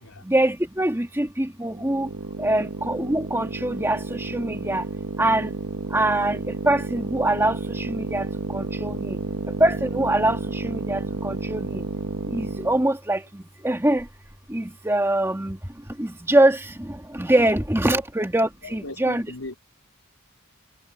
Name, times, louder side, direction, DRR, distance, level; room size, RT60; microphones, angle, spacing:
voice 1, 0.3-2.1 2.4-4.8 5.2-5.5 5.9-6.4 6.6-8.2 8.5-9.2 9.6-11.8 12.3-14.0 14.5-15.6 16.0-19.3, right 1 dB, 10° right, 1.7 m, -23 dB
sound 1, 1.7-12.9, right 3 dB, 70° right, 1.0 m, -31 dB
voice 2, 18.6-19.5, left 2 dB, 75° left, 3.7 m, -38 dB
head